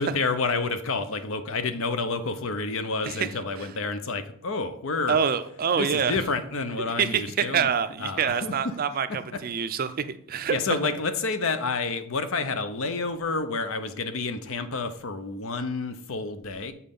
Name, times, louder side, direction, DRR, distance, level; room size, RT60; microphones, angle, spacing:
voice 1, 0.0-5.2 5.8-7.7 8.0-8.5 10.5-16.7, left 3 dB, 65° left, 10 dB, 0.7 m, -29 dB
voice 2, 5.1-6.2 7.0-10.6, right 7 dB, 40° right, 12 dB, 0.4 m, -26 dB
7.4 x 4.2 x 5.3 m, 0.66 s
head